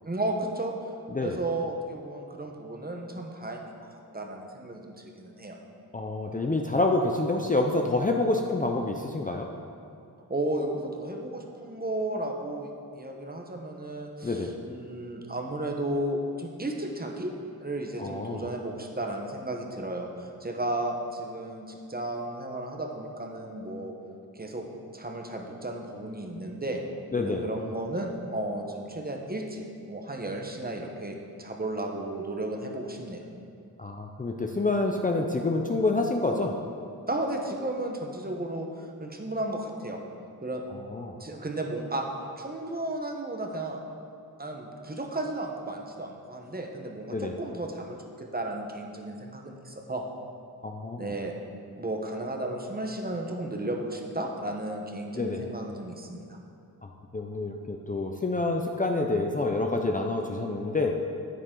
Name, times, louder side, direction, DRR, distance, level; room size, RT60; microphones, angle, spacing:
voice 1, 0.0-0.7 1.2-3.9 4.1-5.6 10.3-17.3 17.6-23.9 24.3-24.7 24.9-26.8 27.2-33.2 37.1-40.0 40.4-40.6 41.2-42.0 42.4-43.8 44.4-50.0 51.0-51.3 51.8-56.4, right 1 dB, 25° right, 2 dB, 1.0 m, -34 dB
voice 2, 5.9-9.5 14.2-14.5 18.0-18.5 27.1-27.5 33.8-36.5 40.7-41.2 47.1-47.4 50.6-51.1 55.1-55.4 56.8-61.0, left 2 dB, 20° left, 2 dB, 0.5 m, -28 dB
9.3 x 9.1 x 3.8 m, 2.6 s
wide cardioid pair, 105°, 37 cm